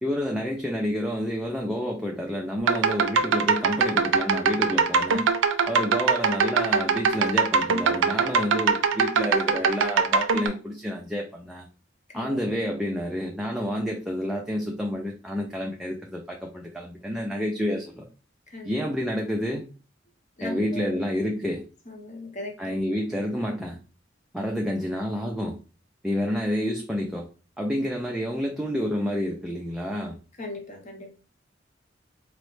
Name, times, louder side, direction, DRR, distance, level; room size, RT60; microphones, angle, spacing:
voice 1, 0.0-5.3 5.7-11.7 12.1-18.0 18.6-19.7 20.4-21.6 22.6-23.8 24.3-25.6 26.0-27.3 27.6-30.2, equal, 5° right, 0.3 m, -29 dB
sound 1, 2.6-10.5, right 5 dB, 90° right, 0.4 m, -22 dB
voice 2, 20.4-20.9 21.9-22.8 30.4-31.1, left 2 dB, 40° left, 0.8 m, -38 dB
4.0 x 2.0 x 3.1 m
head